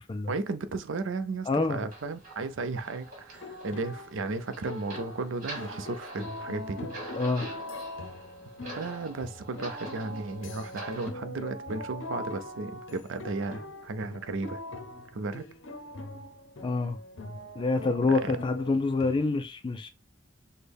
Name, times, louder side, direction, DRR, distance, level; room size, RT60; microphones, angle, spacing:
voice 1, 0.3-6.9 8.8-14.6 15.1-15.5 18.1-18.3, right 3 dB, 80° right, 0.5 m, -34 dB
voice 2, 1.5-1.9 7.1-7.5 16.6-17.0 17.6-19.9, left 3 dB, 25° left, 0.3 m, -27 dB
sound 1, 1.9-11.1, right 2 dB, 45° right, 1.9 m, -45 dB
sound 2, 3.3-19.3, left 1 dB, 85° left, 0.6 m, -42 dB
6.2 x 2.1 x 3.4 m
head